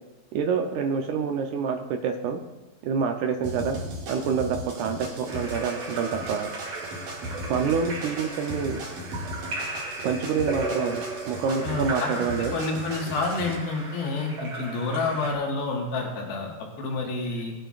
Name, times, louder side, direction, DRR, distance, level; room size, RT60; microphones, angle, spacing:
voice 1, 0.3-2.4 2.8-3.8 4.1-6.5 7.5-8.8 10.0-12.6, right 6 dB, 80° right, 4 dB, 1.7 m, -27 dB
sound 1, 3.4-13.5, equal, 60° right, 3.5 m, -37 dB
Splash splatter / Drip / Trickle dribble, 5.3-15.3, right 3 dB, 40° right, 3.6 m, -36 dB
voice 2, 11.6-12.1 12.5-17.5, left 3 dB, 85° left, -1 dB, 3.4 m, -29 dB
20.5 x 9.0 x 2.4 m, 1.1 s
omnidirectional pair, 4.3 m